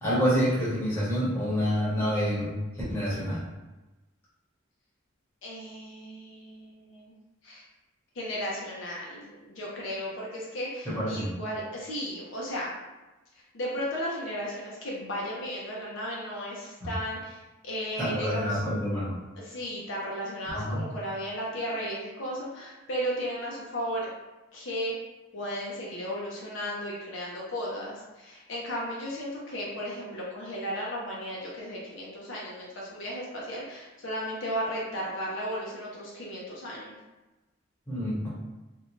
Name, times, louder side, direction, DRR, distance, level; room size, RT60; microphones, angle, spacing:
voice 1, 0.0-2.5 2.9-3.4 10.9-11.3 16.8-16.9 18.0-19.1 20.5-20.8 37.9-38.3, equal, 10° left, -9 dB, 0.9 m, -27 dB
voice 2, 5.4-7.2 7.4-7.6 8.1-12.7 13.5-18.6 19.4-24.1 24.5-24.9 25.3-36.9, equal, 60° left, -4 dB, 0.5 m, -35 dB
2.5 x 2.2 x 3.0 m, 1.1 s
head